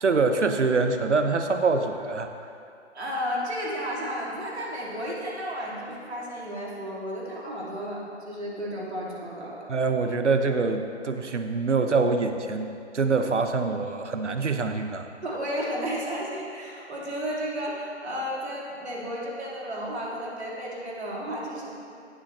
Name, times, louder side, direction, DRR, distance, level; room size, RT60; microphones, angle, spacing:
voice 1, 0.0-2.3 9.7-15.1, right 4 dB, 80° right, 7 dB, 1.0 m, -25 dB
voice 2, 2.9-9.7 15.2-21.7, equal, 65° right, -4 dB, 2.8 m, -33 dB
16.0 x 7.7 x 3.2 m, 2.5 s
figure-of-eight pair, 145°, 35 cm